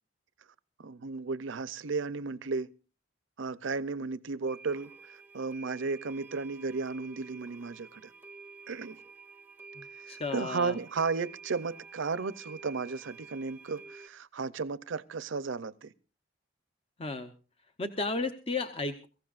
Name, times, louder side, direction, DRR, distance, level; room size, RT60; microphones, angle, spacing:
voice 1, 0.8-2.7 3.4-8.1 8.7-9.0 10.0-15.9, right 4 dB, 80° right, 0.6 m, -34 dB
sound 1, 4.5-14.1, right 4 dB, 10° right, 0.6 m, -50 dB
voice 2, 9.7-10.8 17.0-17.3 17.8-19.1, left 3 dB, 30° left, 0.7 m, -34 dB
23.0 x 15.5 x 2.5 m
head